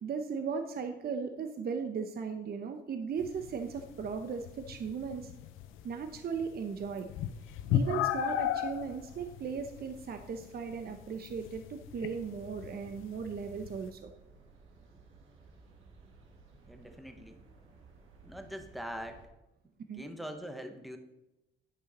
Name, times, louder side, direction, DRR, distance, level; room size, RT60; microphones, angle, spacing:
voice 1, 0.0-5.3 5.8-7.1 7.7-14.1 19.9-20.1, right 6 dB, 50° right, 7 dB, 0.8 m, -37 dB
sound 1, 3.2-13.9, left 10 dB, 85° left, 0.6 m, -37 dB
sound 2, 6.9-19.3, right 4 dB, 85° right, 1.5 m, -58 dB
voice 2, 16.7-17.4 18.2-19.3 19.9-21.0, equal, ahead, 7 dB, 1.0 m, -43 dB
10.5 x 5.6 x 4.2 m, 0.92 s
cardioid pair, 90°, 20 cm